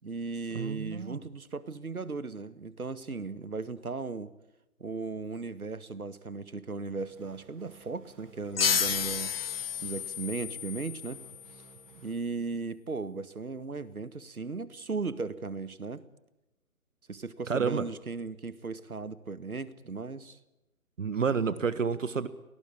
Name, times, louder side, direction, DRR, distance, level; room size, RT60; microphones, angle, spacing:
voice 1, 0.0-4.3 4.8-9.4 9.8-11.2 12.0-16.0 17.1-20.4, right 4 dB, 80° right, 15 dB, 1.9 m, -37 dB
voice 2, 0.5-1.2 17.5-17.8 21.0-22.3, right 5 dB, 60° right, 15 dB, 1.5 m, -29 dB
sound 1, 7.0-12.1, right 5 dB, 35° right, 7.1 m, -57 dB
sound 2, 8.6-11.8, left 7 dB, 45° left, 0.9 m, -31 dB
22.5 x 19.0 x 8.6 m, 0.95 s
figure-of-eight pair, 145°, 43 cm